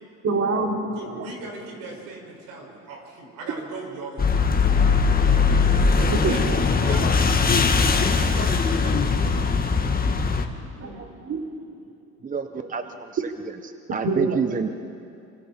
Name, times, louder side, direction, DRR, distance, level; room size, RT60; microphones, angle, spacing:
voice 1, 0.2-1.2 6.2-6.4 10.2-10.4 10.8-11.4 14.0-14.4, right 3 dB, 45° right, 0 dB, 3.5 m, -26 dB
voice 2, 0.9-5.6 5.9-6.4 6.7-7.6 7.9-9.0, right 3 dB, 75° right, 0 dB, 6.0 m, -39 dB
sound 1, 4.2-10.5, left 5 dB, 25° left, 1.8 m, -20 dB
voice 3, 12.2-14.7, right 5 dB, 25° right, 8 dB, 1.0 m, -29 dB
28.0 x 25.5 x 4.5 m, 2.4 s
supercardioid pair, 85°, 34 cm